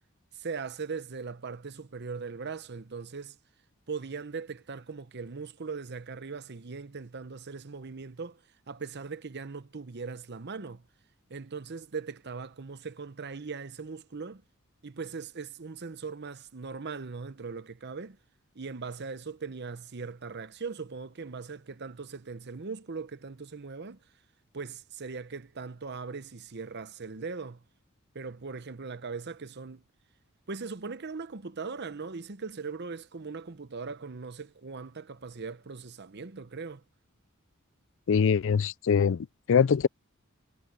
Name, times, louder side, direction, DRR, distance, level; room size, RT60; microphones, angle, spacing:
voice 1, 0.3-3.4 3.9-8.4 8.7-10.8 11.3-14.4 14.8-18.2 18.5-24.0 24.5-27.6 28.1-29.8 30.5-36.8, right 4 dB, 55° right, 0.9 m, -39 dB
voice 2, 38.1-39.9, left 6 dB, 65° left, 0.4 m, -23 dB
head